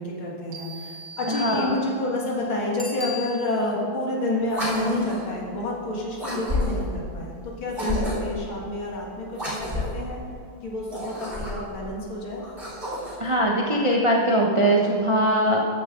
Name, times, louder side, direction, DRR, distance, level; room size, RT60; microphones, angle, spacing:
voice 1, 0.0-10.2 10.6-12.4, left 2 dB, 70° left, -3 dB, 2.7 m, -29 dB
sound 1, 0.5-2.3, equal, 75° right, 1.7 m, -40 dB
voice 2, 1.3-1.8 7.8-8.0 13.2-15.6, right 1 dB, 40° right, -2 dB, 0.4 m, -21 dB
Bicycle bell, 2.7-3.9 9.4-9.5, left 3 dB, ahead, 0.7 m, -37 dB
sound 2, 4.5-5.3 6.2-7.0 7.7-8.4 9.3-10.0 10.8-11.8 12.4-13.3, left 1 dB, 25° right, 3.5 m, -30 dB
13.5 x 9.6 x 3.8 m, 2.3 s
omnidirectional pair, 2.3 m